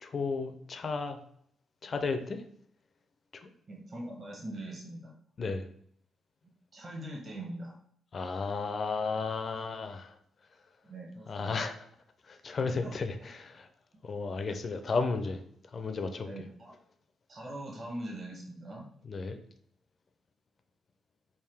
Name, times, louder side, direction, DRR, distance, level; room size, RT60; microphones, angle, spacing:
voice 1, 0.0-1.2 1.8-2.4 3.4-3.5 5.4-5.6 8.1-10.1 11.3-11.7 12.3-13.7 14.0-15.4 15.7-16.3 19.1-19.4, left 4 dB, 40° left, 7 dB, 0.4 m, -33 dB
voice 2, 3.7-5.1 6.7-7.8 10.8-11.6 12.7-13.3 16.2-16.7 17.3-18.9, right 1 dB, 40° right, -2 dB, 0.9 m, -42 dB
3.5 x 2.5 x 3.3 m, 0.65 s
cardioid pair, 110°, 0 cm